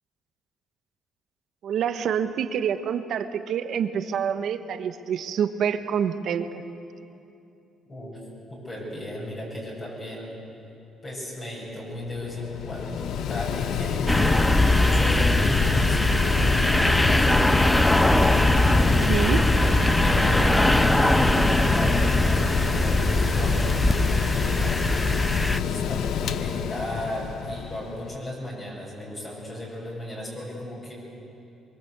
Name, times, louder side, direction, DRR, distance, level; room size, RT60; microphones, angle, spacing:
voice 1, 1.6-6.6 18.9-19.7, right 8 dB, 65° right, 9 dB, 1.3 m, -27 dB
voice 2, 8.5-10.4 11.0-14.2 14.5-18.3 19.2-19.7 20.0-25.1 25.4-30.9, left 1 dB, 30° left, -5 dB, 7.8 m, -36 dB
Mechanical fan, 11.9-28.2, left 8 dB, 75° left, 0.8 m, -28 dB
sound 1, 14.1-25.6, left 1 dB, 5° left, 0.5 m, -21 dB
24.5 x 23.0 x 8.2 m, 2.7 s
cardioid pair, 110°, 0 cm